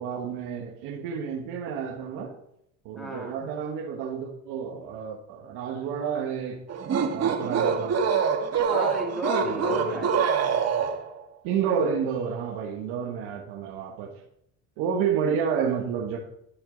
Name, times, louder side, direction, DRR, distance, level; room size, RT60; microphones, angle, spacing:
voice 1, 0.0-2.4 2.8-6.6 7.1-8.0 9.4-10.0 11.4-14.2 14.8-16.2, right 7 dB, 75° right, 1.5 m, -30 dB
voice 2, 3.0-3.3 8.7-10.4, equal, ahead, 1.8 m, -33 dB
sound 1, 6.7-11.2, right 6 dB, 40° right, 1.3 m, -25 dB
12.0 x 4.5 x 5.1 m
supercardioid pair, 105°, 41 cm